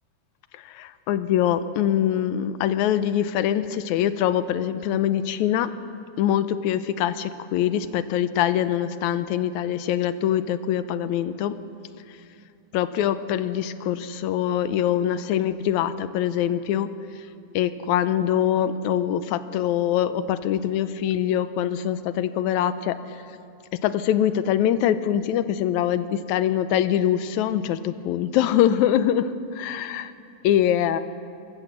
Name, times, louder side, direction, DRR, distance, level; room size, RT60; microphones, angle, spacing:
voice 1, 0.5-5.7 6.2-11.6 12.7-16.9 17.5-23.2 23.8-30.1 30.4-31.0, left 10 dB, 80° left, 12 dB, 2.0 m, -23 dB
24.5 x 14.5 x 7.3 m, 2.5 s
omnidirectional pair, 3.6 m